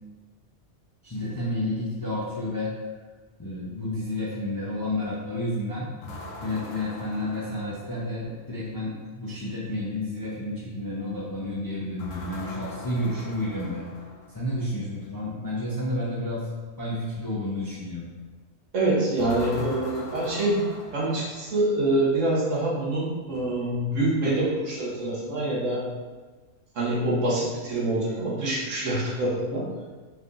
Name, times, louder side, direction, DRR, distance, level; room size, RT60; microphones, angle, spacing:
voice 1, 1.0-2.7 3.4-5.9 6.4-13.9 14.3-16.5 16.8-18.1 23.3-23.5, left 1 dB, 25° left, -6 dB, 0.5 m, -31 dB
sound 1, 6.0-8.4 12.0-14.5 19.2-21.8, left 2 dB, 75° left, 1.0 m, -41 dB
voice 2, 18.7-20.6 20.9-25.8 26.7-29.7, right 1 dB, 75° right, -5 dB, 1.4 m, -25 dB
4.5 x 3.5 x 2.5 m, 1.3 s
omnidirectional pair, 1.3 m